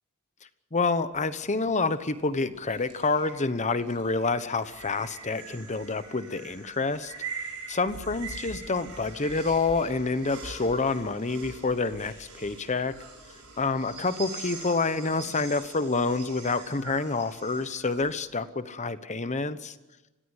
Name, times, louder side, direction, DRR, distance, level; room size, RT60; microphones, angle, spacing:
voice 1, 0.7-7.1 7.7-12.9 13.6-19.7, left 3 dB, 30° left, 12 dB, 1.0 m, -28 dB
sound 1, 1.1-18.1, right 4 dB, 70° right, 7.0 m, -43 dB
29.5 x 16.5 x 8.1 m, 1.1 s
head